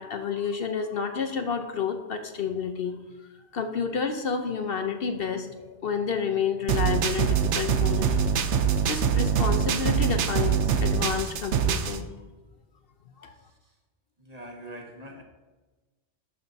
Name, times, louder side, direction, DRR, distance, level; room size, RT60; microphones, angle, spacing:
voice 1, 0.0-2.9 3.5-8.2 8.9-12.1 13.2-13.3, left 6 dB, 60° left, 6 dB, 0.9 m, -30 dB
sound 1, 6.7-12.0, right 7 dB, 75° right, 1.0 m, -24 dB
voice 2, 13.4-13.7 14.2-15.2, right 1 dB, 35° right, 1 dB, 1.4 m, -44 dB
12.0 x 9.3 x 2.7 m, 1.2 s
omnidirectional pair, 1.2 m